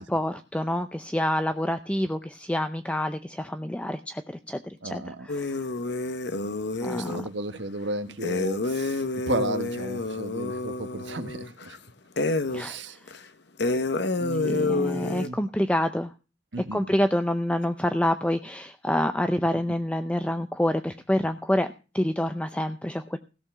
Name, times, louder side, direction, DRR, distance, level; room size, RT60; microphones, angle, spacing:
voice 1, 0.0-4.2 4.5-5.7 6.8-7.2 12.5-13.0 14.4-16.1 16.7-21.7 21.9-23.2, left 1 dB, 5° left, 9 dB, 0.5 m, -27 dB
voice 2, 4.8-5.3 6.9-11.8 12.6-13.0 14.1-15.4 16.5-16.8, right 1 dB, 65° right, 9 dB, 1.4 m, -34 dB
sound 1, 5.3-7.3 8.2-11.8 12.2-12.7 13.1-13.2 13.6-15.3, left 2 dB, 60° left, 0.9 m, -29 dB
16.5 x 7.0 x 6.0 m, 0.33 s
head